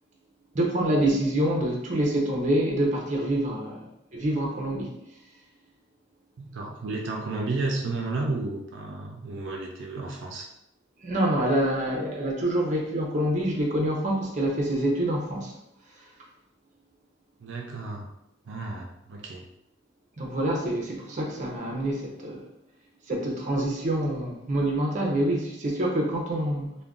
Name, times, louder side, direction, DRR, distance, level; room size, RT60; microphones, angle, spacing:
voice 1, 0.5-3.8 4.1-4.9 11.0-15.5 20.2-22.5 23.1-26.8, right 1 dB, 40° right, -1 dB, 0.6 m, -26 dB
voice 2, 6.4-10.5 17.4-18.1 18.5-19.5, right 3 dB, 80° right, 0 dB, 0.4 m, -32 dB
2.4 x 2.2 x 3.5 m, 0.81 s
head